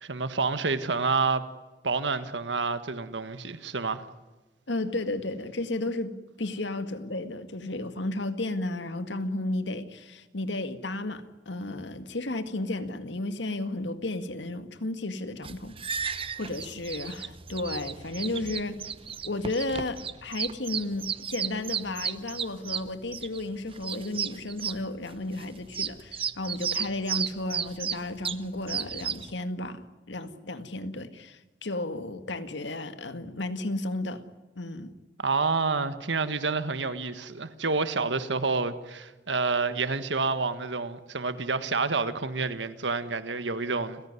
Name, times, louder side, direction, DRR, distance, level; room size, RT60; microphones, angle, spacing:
voice 1, 0.0-1.4 1.8-4.0 35.2-44.0, right 4 dB, 85° right, 1.6 m, -28 dB
voice 2, 4.7-6.1 6.4-18.8 19.2-34.2 34.6-34.9, left 2 dB, 85° left, 2.0 m, -33 dB
sound 1, 15.4-29.3, right 7 dB, 30° right, 0.9 m, -34 dB
30.0 x 16.5 x 9.7 m
head